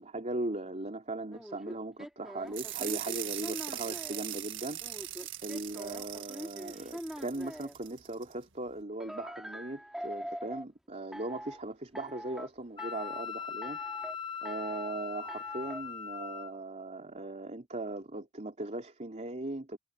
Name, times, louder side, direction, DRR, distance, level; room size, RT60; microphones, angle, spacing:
voice 1, 0.0-5.0 5.4-13.8 14.4-19.8, right 2 dB, 30° right, 3.3 m, -39 dB
sound 1, 1.3-4.2 4.8-7.7 9.0-10.7 11.1-11.6 12.0-12.5 12.8-13.3 13.6-14.2 14.5-14.9 15.3-15.8, equal, ahead, 3.0 m, -43 dB
sound 2, 2.5-8.3, right 13 dB, 55° right, 1.8 m, -40 dB
Wind instrument woodwind instrument, 12.8-16.5, left 7 dB, 20° left, 1.6 m, -40 dB
head